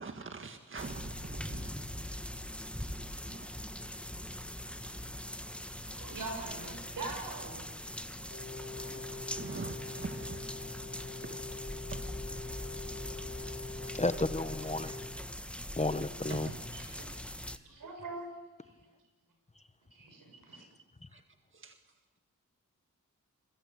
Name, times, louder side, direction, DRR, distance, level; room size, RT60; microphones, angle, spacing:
voice 1, 0.0-2.0 2.5-2.6 2.9-3.9 4.9-5.2 7.1-7.2 8.2-8.3 9.3-10.8 11.2-11.4 11.9-12.0 16.3-16.6 17.8-17.9 20.5-20.6 21.1-21.2 21.5-22.0, right 4 dB, 40° right, 6 dB, 1.8 m, -45 dB
sound 1, 0.8-17.6, left 1 dB, 5° left, 1.3 m, -42 dB
voice 2, 5.8-7.7 8.7-9.2 13.8-14.0 17.0-17.3 17.7-18.3 18.6-18.7 19.9-20.6, right 3 dB, 80° right, 3 dB, 7.0 m, -44 dB
Brass instrument, 8.3-15.2, left 3 dB, 40° left, 5.9 m, -45 dB
voice 3, 13.9-15.0 15.8-16.5, left 2 dB, 20° left, 12 dB, 1.1 m, -32 dB
28.5 x 22.5 x 8.5 m, 1.3 s
cardioid pair, 65°, 32 cm